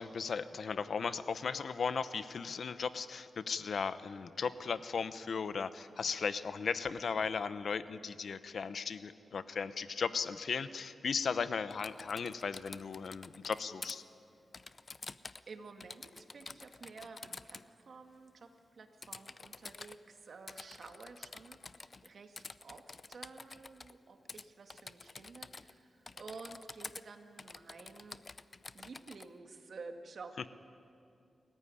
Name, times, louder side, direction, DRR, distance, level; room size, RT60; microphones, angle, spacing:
voice 1, 0.0-14.0, left 5 dB, 65° left, 13 dB, 0.9 m, -36 dB
Typing, 11.7-14.0 14.5-15.5 15.8-17.7 19.0-20.0 20.5-22.1 22.4-23.9 24.3-24.4 24.7-25.8 26.1-27.0 27.4-29.3, left 3 dB, 40° left, 0.6 m, -49 dB
voice 2, 15.5-28.2 28.7-30.5, right 4 dB, 65° right, 5 dB, 2.0 m, -52 dB
28.5 x 15.0 x 10.0 m, 2.5 s
cardioid pair, 90°, 0 cm